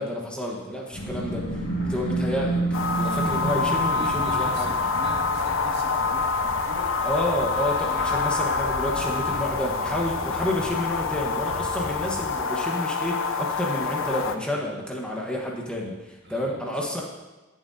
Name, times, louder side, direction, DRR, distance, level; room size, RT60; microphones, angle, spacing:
voice 1, 0.0-4.7 7.0-17.0, left 1 dB, 5° left, -2 dB, 1.2 m, -30 dB
sound 1, 0.9-12.3, right 2 dB, 90° left, 2.5 m, -33 dB
sound 2, 2.7-14.4, left 4 dB, 70° left, 0.6 m, -26 dB
voice 2, 3.0-6.9 7.7-8.3 16.2-16.7, right 1 dB, 55° right, -2 dB, 1.9 m, -41 dB
17.5 x 7.3 x 2.7 m, 1.2 s
head